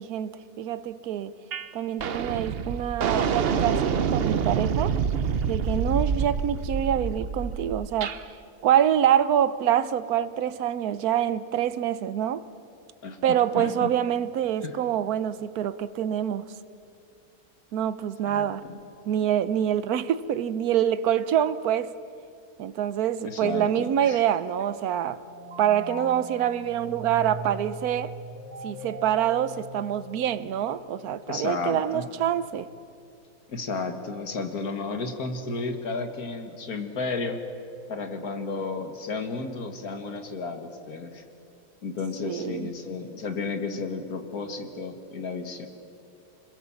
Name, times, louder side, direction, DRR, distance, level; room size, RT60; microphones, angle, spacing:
voice 1, 0.0-1.3 1.7-5.0 5.5-8.2 8.6-12.5 13.2-16.5 17.7-18.6 19.1-21.9 22.6-25.2 25.6-28.1 28.6-32.7 42.2-42.7, right 10 dB, 70° right, 1.2 m, -26 dB
sound 1, 1.5-1.7 2.0-8.2, right 6 dB, 50° right, 0.8 m, -27 dB
voice 2, 13.0-13.9 14.6-14.8 18.2-18.8 23.2-24.2 31.3-32.1 33.5-37.4 37.9-41.2 41.8-45.7, left 4 dB, 70° left, 2.2 m, -33 dB
sound 2, 25.1-30.5, right 1 dB, 30° right, 2.8 m, -40 dB
25.5 x 21.0 x 7.2 m
omnidirectional pair, 1.7 m